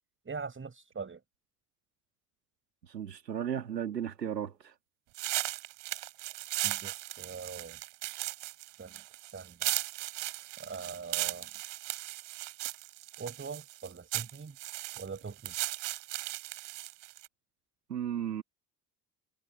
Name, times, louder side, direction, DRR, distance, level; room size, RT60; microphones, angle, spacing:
voice 1, 0.3-1.2 6.6-7.8 8.8-9.0 9.3-9.7 10.6-11.5 13.2-14.6 15.0-15.5, right 5 dB, 25° right, 5.5 m, -42 dB
voice 2, 2.9-4.7 17.9-18.4, right 9 dB, 90° right, 2.1 m, -35 dB
sound 1, 5.1-17.3, right 20 dB, 60° right, 3.4 m, -37 dB
figure-of-eight pair, 55°, 48 cm